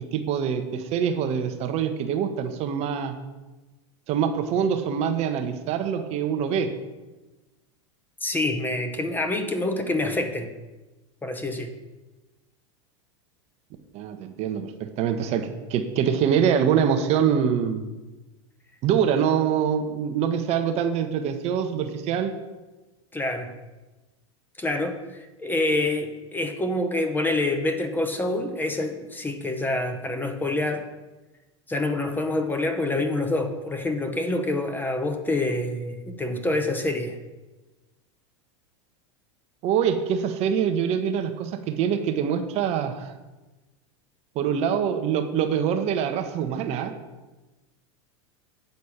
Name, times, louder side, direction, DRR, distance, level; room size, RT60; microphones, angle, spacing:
voice 1, 0.0-3.1 4.1-6.7 13.9-17.9 18.8-22.3 39.6-43.1 44.3-46.9, right 8 dB, 45° right, 6 dB, 0.9 m, -24 dB
voice 2, 8.2-10.5 11.2-11.7 23.1-23.5 24.6-30.8 31.7-37.2, left 2 dB, 10° left, 6 dB, 0.9 m, -26 dB
8.0 x 4.2 x 7.1 m, 1.1 s
hypercardioid pair, 100°, 16 cm